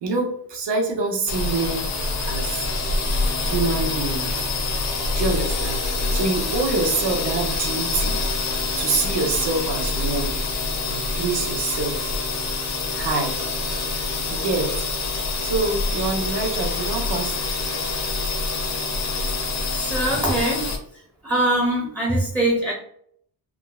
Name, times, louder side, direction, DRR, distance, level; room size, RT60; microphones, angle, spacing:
voice 1, 0.0-1.9 2.2-2.7 3.4-4.3 5.1-5.8 6.1-8.2 8.8-10.3 10.9-12.1 12.9-13.3 14.3-14.7 15.4-17.3, right 3 dB, 80° right, 1 dB, 0.9 m, -25 dB
sound 1, 1.3-20.8, left 3 dB, 40° left, 0.5 m, -26 dB
voice 2, 19.7-20.6 21.2-22.7, right 1 dB, 5° right, -3 dB, 0.4 m, -22 dB
3.6 x 2.0 x 2.3 m, 0.65 s
wide cardioid pair, 180°, 41 cm